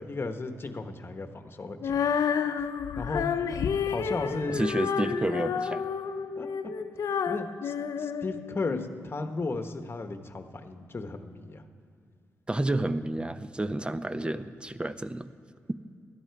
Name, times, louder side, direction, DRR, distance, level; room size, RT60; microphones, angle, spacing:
voice 1, 0.0-2.0 3.0-3.3 3.9-4.6 6.4-6.5 7.3-11.6 14.2-14.3, left 3 dB, 40° left, 7 dB, 1.1 m, -35 dB
Female singing, 1.8-8.9, left 7 dB, 80° left, 0.6 m, -30 dB
voice 2, 4.5-5.8 12.5-15.3, right 1 dB, 15° right, 12 dB, 0.7 m, -30 dB
16.5 x 12.0 x 4.7 m, 2.2 s
cardioid pair, 65°, 6 cm